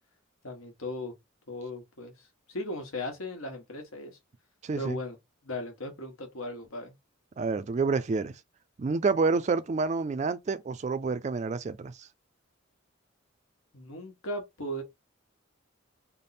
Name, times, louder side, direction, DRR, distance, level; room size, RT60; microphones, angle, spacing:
voice 1, 0.4-1.1 1.5-2.1 2.5-4.2 4.8-5.2 5.4-6.9 13.7-14.8, left 1 dB, 85° left, 1.2 m, -37 dB
voice 2, 4.6-5.0 7.4-8.4 8.8-12.1, right 4 dB, 35° right, 0.3 m, -28 dB
3.4 x 2.1 x 4.0 m
head